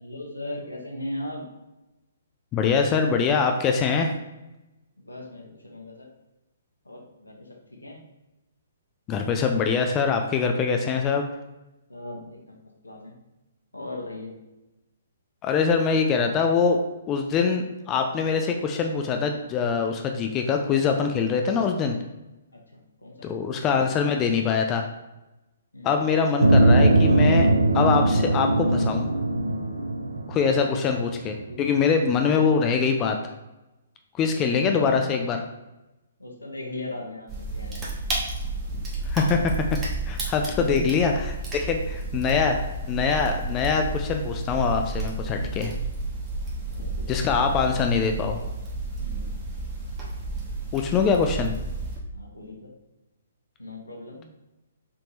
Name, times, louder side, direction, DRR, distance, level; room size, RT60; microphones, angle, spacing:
voice 1, 0.0-1.4 5.0-6.1 6.8-8.0 11.9-13.2 13.7-14.4 22.5-23.3 25.7-26.0 31.4-31.7 34.6-35.1 36.2-37.8 40.6-40.9 42.0-42.1 45.3-45.6 46.7-47.7 49.0-49.3 52.1-52.7 53.6-54.2, left 1 dB, 85° left, -1 dB, 0.9 m, -38 dB
voice 2, 2.5-4.1 9.1-11.3 15.4-16.8 17.1-22.0 23.2-24.9 25.8-29.1 30.3-33.2 34.2-35.4 39.0-39.7 40.1-45.7 47.1-48.4 50.7-51.5, left 5 dB, 25° left, 4 dB, 0.3 m, -23 dB
sound 1, 26.4-31.3, right 1 dB, 75° right, 0.5 m, -20 dB
sound 2, 37.3-52.0, right 2 dB, 20° right, 0.9 m, -31 dB
3.5 x 2.8 x 2.8 m, 1.0 s
figure-of-eight pair, 125°, 0 cm